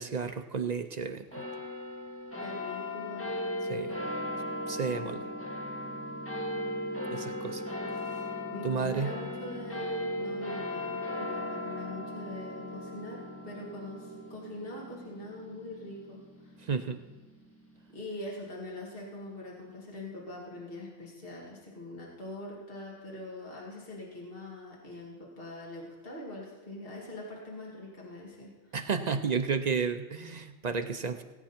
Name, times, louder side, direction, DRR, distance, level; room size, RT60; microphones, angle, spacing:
voice 1, 0.0-1.4 3.7-4.0 4.7-5.3 7.1-7.6 8.6-9.1 16.6-17.0 28.7-31.2, right 5 dB, 45° right, 8 dB, 0.6 m, -32 dB
sound 1, 1.3-18.0, left 1 dB, 10° left, 1.6 m, -37 dB
voice 2, 2.4-3.3 8.5-16.5 17.9-28.5, left 1 dB, 50° left, -4 dB, 2.6 m, -43 dB
17.5 x 9.0 x 4.4 m, 1.2 s
omnidirectional pair, 1.3 m